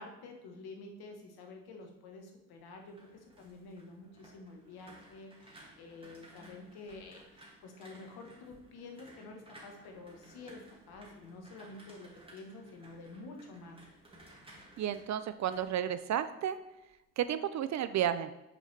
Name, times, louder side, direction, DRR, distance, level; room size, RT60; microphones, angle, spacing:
voice 1, 0.0-13.8, left 3 dB, 65° left, 3 dB, 1.3 m, -49 dB
sound 1, 2.6-16.6 16.9-17.3, right 1 dB, 15° right, 2.2 m, -57 dB
voice 2, 14.8-16.6 17.2-18.3, right 10 dB, 45° right, 12 dB, 0.4 m, -32 dB
5.7 x 4.9 x 3.3 m, 0.95 s
hypercardioid pair, 60°, 40 cm